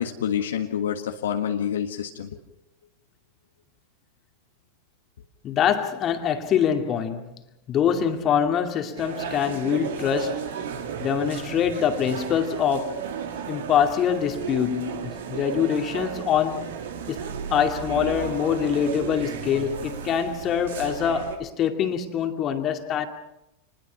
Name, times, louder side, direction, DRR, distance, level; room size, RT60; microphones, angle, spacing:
voice 1, 0.0-2.4, left 9 dB, 65° left, 1.6 m, -27 dB
voice 2, 5.4-7.3 7.7-10.5 11.0-13.0 13.5-16.7 17.1-17.2 17.5-23.1, left 8 dB, 30° left, 2.3 m, -24 dB
sound 1, 9.0-21.4, right 7 dB, 60° right, 2.5 m, -34 dB
28.0 x 21.0 x 5.8 m
figure-of-eight pair, 90°, 0 cm